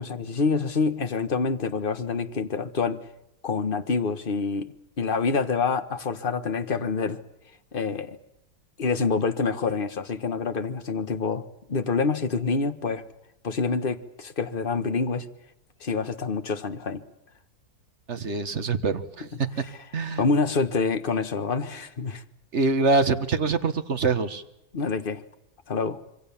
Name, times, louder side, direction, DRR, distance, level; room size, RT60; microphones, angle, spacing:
voice 1, 0.0-3.0 3.4-7.2 7.7-8.2 8.8-13.0 13.4-15.3 15.8-17.0 19.6-19.7 20.2-22.2 24.7-25.2 25.7-26.0, left 4 dB, 35° left, 10 dB, 1.4 m, -27 dB
voice 2, 18.1-19.3 19.9-20.2 22.5-24.4, right 3 dB, 45° right, 9 dB, 1.7 m, -24 dB
26.5 x 24.0 x 7.2 m, 0.85 s
omnidirectional pair, 1.8 m